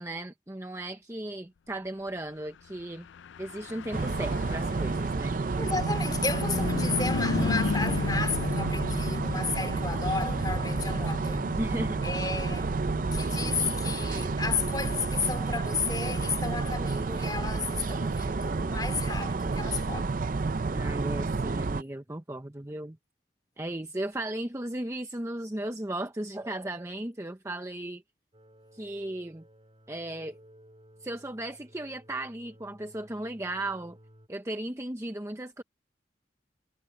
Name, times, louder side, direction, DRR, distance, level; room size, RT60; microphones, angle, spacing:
voice 1, 0.0-3.1 3.4-5.4 11.6-12.0 20.7-23.0 23.6-28.0 28.7-29.4 29.9-30.4 31.0-34.0 34.3-35.6, right 1 dB, 15° right, 0.8 m, -36 dB
Car passing by / Truck, 3.0-16.7, left 5 dB, 85° left, 0.4 m, -36 dB
sound 1, 3.9-21.8, right 3 dB, 50° right, 0.5 m, -30 dB
voice 2, 5.6-11.5 12.0-12.8 13.1-20.1, left 4 dB, 20° left, 2.9 m, -33 dB
sound 2, 28.3-34.3, equal, 30° right, 5.6 m, -56 dB
head